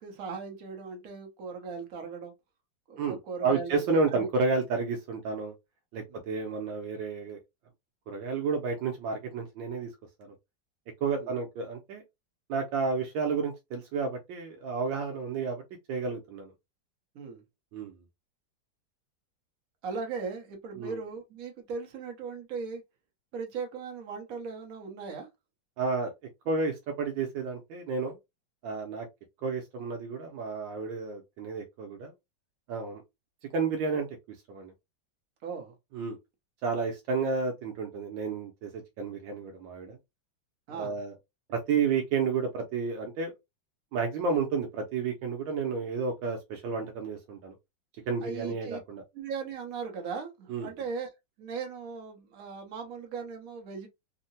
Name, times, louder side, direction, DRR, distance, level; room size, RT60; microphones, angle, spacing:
voice 1, 0.0-2.3 2.9-4.3 6.1-6.2 11.1-11.3 17.1-17.4 19.8-22.8 23.3-25.3 35.4-35.7 40.7-41.0 48.2-48.8 49.1-51.1 51.4-53.9, right 5 dB, 55° right, 1.2 m, -38 dB
voice 2, 3.0-5.5 5.9-7.4 8.1-9.9 10.2-10.3 11.0-12.0 12.5-15.6 15.9-16.5 17.7-17.9 20.8-21.0 25.8-26.1 26.5-28.2 28.6-29.1 29.4-32.1 32.7-33.0 33.5-34.1 34.5-34.7 35.9-36.2 36.6-40.0 40.7-41.1 41.5-43.3 43.9-47.5 48.1-49.0 50.5-50.7, right 4 dB, 80° right, 1.4 m, -31 dB
3.7 x 2.1 x 2.6 m
omnidirectional pair, 2.1 m